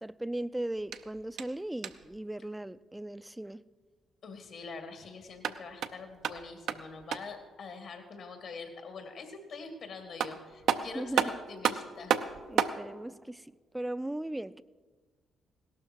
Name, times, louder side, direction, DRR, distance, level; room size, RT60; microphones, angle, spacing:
voice 1, 0.0-3.6 10.9-11.4 12.5-14.6, right 1 dB, 10° right, 0.4 m, -38 dB
sound 1, 0.8-2.2 5.2-7.4 9.7-9.8 10.2-12.8, right 8 dB, 75° right, 0.6 m, -32 dB
voice 2, 4.2-12.2, left 4 dB, 70° left, 2.2 m, -45 dB
17.0 x 12.5 x 4.6 m
supercardioid pair, 60°, 0 cm